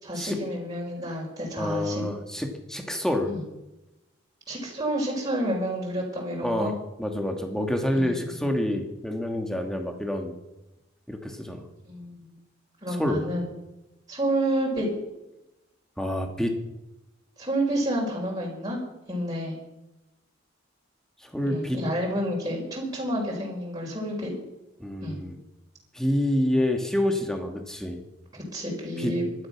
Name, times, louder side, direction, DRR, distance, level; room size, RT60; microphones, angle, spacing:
voice 1, 0.0-2.0 3.3-3.4 4.5-6.7 7.9-8.5 11.8-12.3 12.8-13.5 14.1-14.9 17.4-18.8 19.1-19.5 21.5-24.3 25.0-25.2 28.3-29.2, right 1 dB, 20° right, -3 dB, 4.9 m, -29 dB
voice 2, 1.6-3.3 6.4-6.7 7.0-10.3 11.1-11.7 13.0-13.2 16.0-16.5 21.2-21.8 24.8-25.3 25.9-28.0 29.0-29.1, left 1 dB, 5° left, 4 dB, 2.2 m, -27 dB
18.5 x 12.5 x 6.2 m, 0.96 s
head